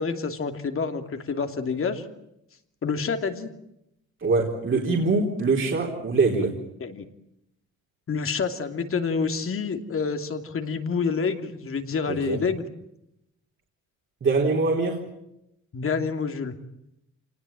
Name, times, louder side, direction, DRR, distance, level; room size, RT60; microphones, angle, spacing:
voice 1, 0.0-2.0 2.8-3.5 6.8-7.0 8.1-12.6 15.7-16.5, left 5 dB, 45° left, 6 dB, 2.8 m, -28 dB
voice 2, 4.2-6.6 12.1-12.4 14.2-15.0, right 3 dB, 40° right, -1 dB, 3.9 m, -23 dB
26.5 x 19.0 x 9.1 m, 0.85 s
cardioid pair, 90°, 30 cm